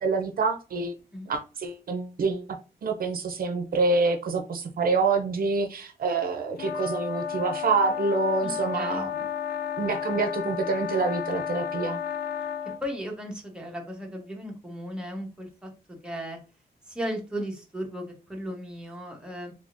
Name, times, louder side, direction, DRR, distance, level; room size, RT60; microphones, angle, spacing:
voice 1, 0.0-0.9 1.3-9.3 9.8-12.0, right 4 dB, 60° right, 5 dB, 0.6 m, -27 dB
sound 1, 6.6-12.8, left 8 dB, 65° left, 0.4 m, -32 dB
voice 2, 8.4-9.1 12.8-16.4 16.9-19.5, equal, 5° right, 0 dB, 1.0 m, -36 dB
3.6 x 3.3 x 2.5 m, 0.32 s
wide cardioid pair, 125°, 17 cm